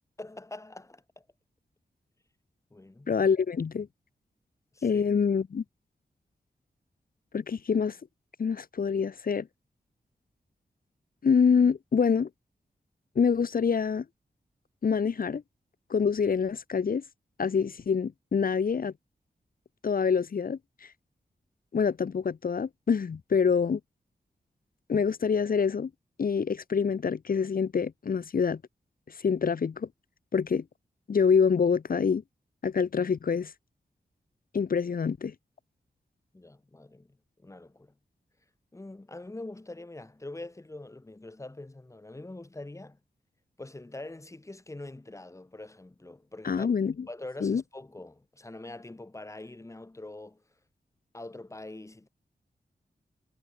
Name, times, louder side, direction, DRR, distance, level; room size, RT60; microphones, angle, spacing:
voice 1, 0.2-1.2 2.7-3.1 4.7-5.0 36.3-37.9 38.7-43.0 43.6-46.7 47.1-50.4 51.1-52.1, left 2 dB, 20° left, 7.6 m, -44 dB
voice 2, 3.1-3.9 4.8-5.6 7.3-8.0 8.4-9.5 11.2-12.3 13.2-14.1 14.8-15.4 15.9-17.0 17.4-18.9 19.8-20.6 21.7-23.8 24.9-25.9 26.2-28.6 29.2-29.9 30.3-30.6 31.1-32.2 32.6-33.5 34.5-35.3 46.4-46.9 47.4-47.6, left 6 dB, 60° left, 1.9 m, -26 dB
wide cardioid pair, 165°, 16 cm